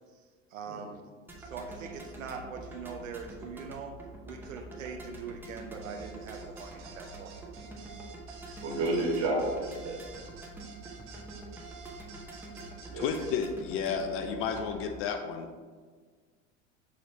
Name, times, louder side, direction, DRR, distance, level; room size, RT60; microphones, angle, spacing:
voice 1, 0.5-1.0 1.4-3.9 4.3-7.4, right 5 dB, 80° right, 4 dB, 0.5 m, -42 dB
sound 1, 1.3-15.0, right 2 dB, 5° right, 0.8 m, -46 dB
sound 2, 5.8-13.4, right 5 dB, 60° right, 1.0 m, -50 dB
voice 2, 8.6-10.0 12.9-13.1, right 2 dB, 40° right, -2 dB, 1.5 m, -30 dB
voice 3, 13.0-15.5, left 6 dB, 35° left, 6 dB, 0.4 m, -32 dB
6.3 x 3.1 x 2.7 m, 1.5 s
hypercardioid pair, 80°, 38 cm